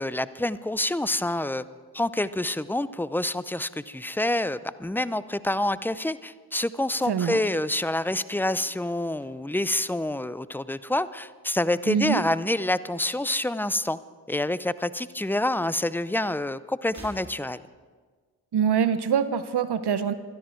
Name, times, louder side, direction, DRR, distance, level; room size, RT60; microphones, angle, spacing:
voice 1, 0.0-1.6 1.9-14.0 14.3-17.6, left 1 dB, 5° left, 16 dB, 0.6 m, -27 dB
voice 2, 7.1-7.4 11.9-12.2 18.5-20.1, right 7 dB, 60° right, 12 dB, 0.9 m, -24 dB
sound 1, 8.5-10.8 11.1-11.7 12.8-13.8 14.0-14.2 15.3-15.4 16.8-17.8, right 1 dB, 35° right, 4.3 m, -51 dB
20.0 x 12.5 x 4.5 m, 1.5 s
supercardioid pair, 40°, 46 cm